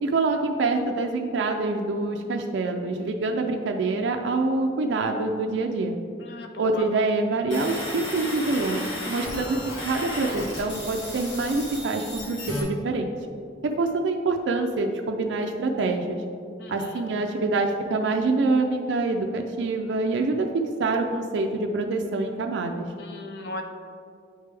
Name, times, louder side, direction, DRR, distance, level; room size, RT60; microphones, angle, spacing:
voice 1, 0.0-6.0 6.6-9.6 9.8-13.1 13.6-16.2 16.7-22.8, right 3 dB, 80° right, 3 dB, 0.4 m, -26 dB
voice 2, 6.2-6.9 16.6-17.1 23.0-23.6, left 2 dB, 60° left, 4 dB, 0.5 m, -38 dB
sound 1, 7.5-12.6, left 1 dB, 90° left, 1.4 m, -34 dB
8.8 x 3.3 x 3.3 m, 2.3 s
head